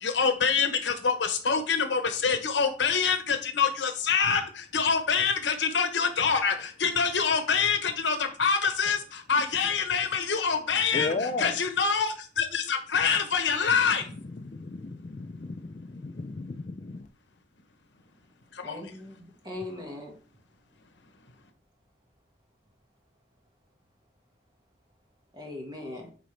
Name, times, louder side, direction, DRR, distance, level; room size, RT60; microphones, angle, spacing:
voice 1, 0.0-11.1 11.4-14.1 18.5-18.8, left 6 dB, 85° left, 7 dB, 1.0 m, -26 dB
voice 2, 10.9-11.6 14.0-17.1, left 3 dB, 40° left, 6 dB, 0.4 m, -34 dB
voice 3, 18.6-20.2 25.3-26.1, left 2 dB, 25° right, 0 dB, 1.7 m, -40 dB
8.8 x 3.9 x 3.3 m, 0.40 s
head